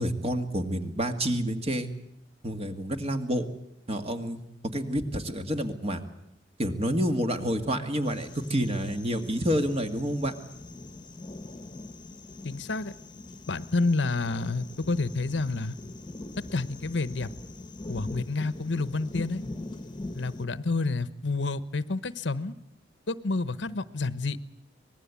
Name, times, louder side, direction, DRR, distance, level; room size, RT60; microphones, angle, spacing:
voice 1, 0.0-1.9 2.4-3.4 3.9-4.4 4.7-6.0 6.6-10.3, equal, 35° right, 6 dB, 2.1 m, -28 dB
sound 1, 8.0-20.5, left 2 dB, 25° left, 1.1 m, -42 dB
voice 2, 12.4-12.9 13.5-15.8 16.5-17.3 17.9-19.4 20.1-22.5 23.1-24.4, left 3 dB, 85° left, 14 dB, 1.0 m, -29 dB
25.0 x 20.0 x 8.4 m, 0.78 s
head